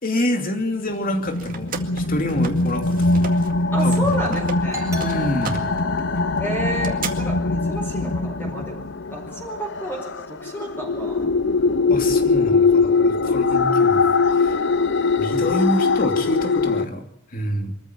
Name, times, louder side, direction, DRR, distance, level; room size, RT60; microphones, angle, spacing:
voice 1, 0.0-3.3 3.8-4.1 5.0-5.6 11.9-14.1 14.3-14.6 15.2-17.0 17.3-17.7, left 1 dB, 45° left, 5 dB, 2.8 m, -26 dB
sound 1, 0.9-3.5 3.8-7.1, right 5 dB, 45° right, 2.1 m, -36 dB
sound 2, 1.1-16.9, left 3 dB, 65° left, 0.8 m, -21 dB
voice 2, 3.7-4.9 6.4-8.8 9.1-11.3 13.2-13.3, right 1 dB, 10° left, -3 dB, 5.1 m, -31 dB
Doorbell, 4.7-8.1, right 3 dB, 15° right, 4.7 m, -39 dB
23.5 x 14.0 x 8.7 m, 0.80 s
head